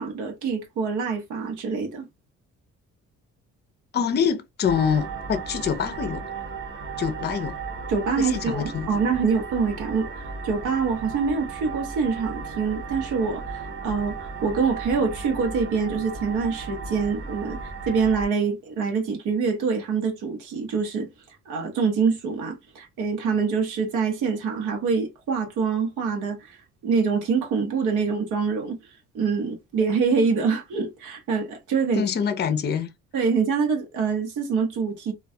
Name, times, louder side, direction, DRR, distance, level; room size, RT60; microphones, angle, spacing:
voice 1, 0.0-2.0 7.9-21.1 21.5-26.6 26.8-28.8 29.1-32.0 33.1-35.1, right 5 dB, 80° right, 0.8 m, -25 dB
voice 2, 3.9-6.2 7.0-7.6 8.2-8.9 31.9-32.9, left 7 dB, 35° left, 0.5 m, -25 dB
sound 1, 4.6-18.3, right 5 dB, 40° right, 0.8 m, -35 dB
2.2 x 2.2 x 2.6 m
cardioid pair, 90°, 30 cm